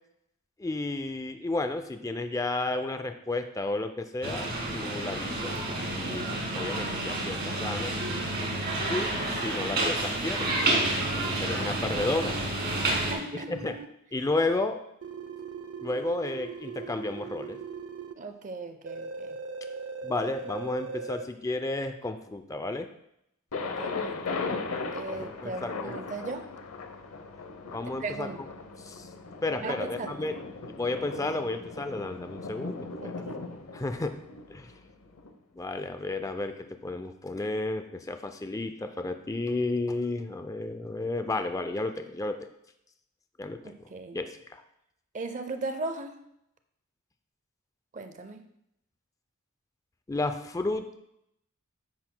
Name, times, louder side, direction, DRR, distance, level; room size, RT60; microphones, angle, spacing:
voice 1, 0.6-4.5 4.7-5.6 5.9-6.3 6.5-8.0 8.8-10.5 11.1-12.4 13.3-13.7 14.1-14.8 15.8-17.6 20.0-22.9 25.1-25.9 27.7-28.3 28.8-29.1 29.4-30.4 30.7-33.2 33.7-34.2 34.5-34.7 35.5-42.5 43.4-43.8 44.1-44.6 50.1-51.0, left 2 dB, 15° left, 7 dB, 0.4 m, -32 dB
sound 1, 4.2-13.1, right 2 dB, 55° right, 2.5 m, -30 dB
sound 2, 5.8-9.3 10.4-13.9 15.0-18.1 18.9-21.2, right 4 dB, 75° right, 0.6 m, -41 dB
voice 2, 9.2-9.7 12.9-13.5 18.2-19.4 23.6-24.4 24.9-26.5 28.0-28.4 29.6-30.1 33.0-33.6 43.6-44.2 45.1-46.2 47.9-48.4, right 3 dB, 35° right, 7 dB, 0.6 m, -38 dB
Thunder, 23.5-35.3, left 4 dB, 90° left, 0.8 m, -38 dB
10.5 x 7.8 x 2.2 m, 0.79 s
head